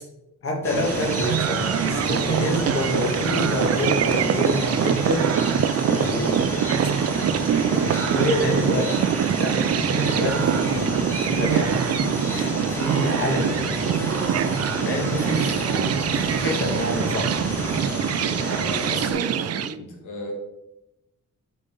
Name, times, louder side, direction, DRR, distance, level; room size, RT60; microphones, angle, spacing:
voice 1, 0.4-5.3 5.9-6.4 7.7-9.0 9.4-9.6 10.0-12.0 12.3-13.6 13.9-14.1 14.8-17.4, left 1 dB, 45° left, -1 dB, 1.9 m, -28 dB
sound 1, 0.6-19.1, left 1 dB, 10° left, 2.1 m, -30 dB
sound 2, 0.8-19.7, right 9 dB, 55° right, 0.5 m, -24 dB
voice 2, 18.4-20.3, left 2 dB, 90° left, 0 dB, 2.3 m, -34 dB
13.5 x 5.2 x 3.8 m, 0.90 s
wide cardioid pair, 160°, 30 cm